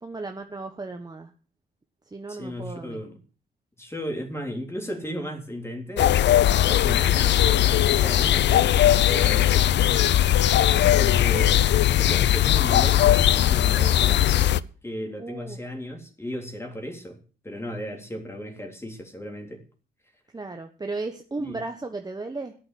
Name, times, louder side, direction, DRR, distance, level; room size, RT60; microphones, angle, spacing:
voice 1, 0.0-1.3 2.0-3.0 10.7-11.1 15.2-15.6 20.3-22.5, right 3 dB, 20° right, 5 dB, 1.3 m, -35 dB
voice 2, 2.3-3.2 3.8-9.9 11.0-19.6 21.4-21.6, equal, 10° left, 3 dB, 3.5 m, -35 dB
sound 1, 6.0-14.6, left 12 dB, 60° left, 0.6 m, -19 dB
Piano, 10.3-13.8, left 7 dB, 85° left, 1.0 m, -37 dB
12.5 x 9.0 x 7.6 m, 0.39 s
cardioid pair, 90°, 20 cm